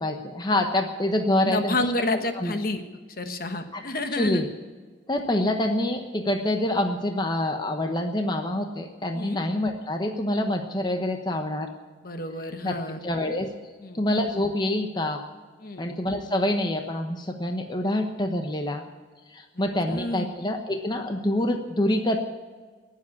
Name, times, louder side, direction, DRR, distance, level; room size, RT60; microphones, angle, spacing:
voice 1, 0.0-1.9 2.4-2.5 3.7-3.8 4.1-4.5 5.1-11.7 12.6-12.8 13.0-13.5 13.9-15.2 15.8-18.8 19.3-22.2, left 1 dB, 25° left, 4 dB, 1.0 m, -26 dB
voice 2, 1.4-2.8 3.2-4.4 9.1-9.4 12.0-13.0 13.8-14.0 15.6-15.9 19.9-20.3, left 2 dB, 50° left, 7 dB, 1.3 m, -29 dB
19.5 x 7.7 x 8.4 m, 1.4 s
head